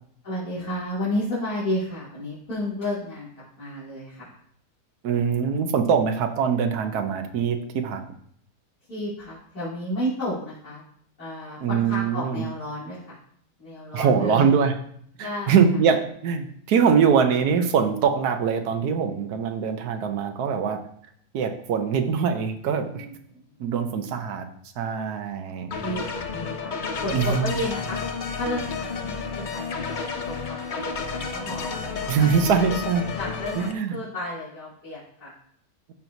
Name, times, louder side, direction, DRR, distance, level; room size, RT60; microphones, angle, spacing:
voice 1, 0.2-4.4 8.9-10.8 11.2-13.2 13.6-14.5 15.2-15.6 22.9-23.5 25.7-26.7 27.0-28.0 28.3-31.8 32.1-32.4 33.1-35.3, left 1 dB, 75° left, -12 dB, 3.3 m, -32 dB
voice 2, 5.0-8.0 11.6-12.4 13.9-14.7 15.2-20.8 21.3-23.1 23.6-24.5 24.8-25.7 27.1-27.5 32.1-33.1 33.6-34.0, right 6 dB, 80° right, 6 dB, 1.3 m, -23 dB
sound 1, 25.7-33.7, left 4 dB, 55° left, 0.5 m, -31 dB
12.5 x 4.5 x 2.7 m, 0.65 s
omnidirectional pair, 1.6 m